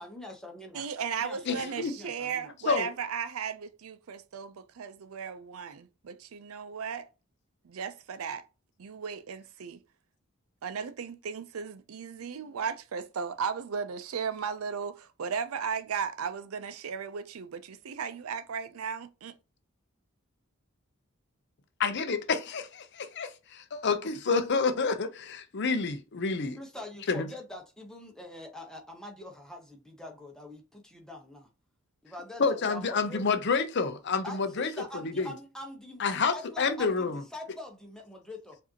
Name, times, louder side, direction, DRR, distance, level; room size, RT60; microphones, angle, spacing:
voice 1, 0.0-0.8 1.2-2.5 26.6-31.5 32.0-33.2 34.2-38.6, left 1 dB, 5° left, 0.9 m, -44 dB
voice 2, 0.7-7.1 7.6-8.5 8.8-9.8 10.6-19.3, right 6 dB, 90° right, 0.5 m, -36 dB
voice 3, 1.5-1.9 2.7-2.9 21.8-26.6 27.1-27.3 32.4-35.3 36.0-37.2, left 4 dB, 55° left, 0.6 m, -29 dB
4.9 x 2.7 x 2.8 m
head